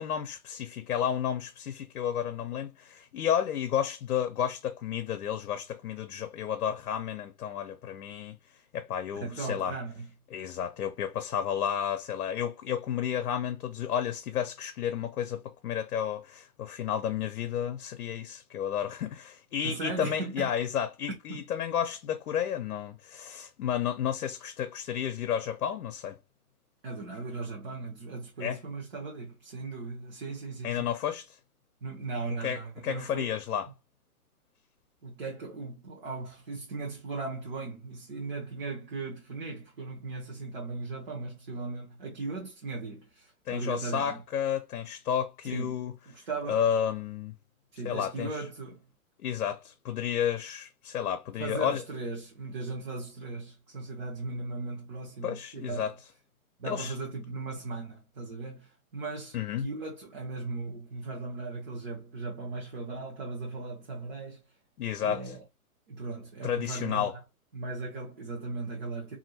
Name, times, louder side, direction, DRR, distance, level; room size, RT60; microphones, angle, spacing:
voice 1, 0.0-8.3 8.7-9.7 10.3-26.2 28.4-28.6 30.6-31.4 32.4-33.7 43.5-45.9 46.5-47.3 47.8-48.4 49.2-51.8 55.2-55.9 56.7-56.9 59.3-59.7 64.8-65.3 66.4-67.2, left 9 dB, 75° left, 0.7 m, -31 dB
voice 2, 9.2-10.1 19.6-20.5 21.3-21.4 26.8-30.9 31.8-33.3 35.0-44.2 45.4-46.6 47.7-48.8 51.4-55.9 56.6-64.4 65.0-65.4 65.9-67.1 67.5-69.2, right 3 dB, 35° right, 0.9 m, -37 dB
2.9 x 2.6 x 2.8 m
hypercardioid pair, 170°, 44 cm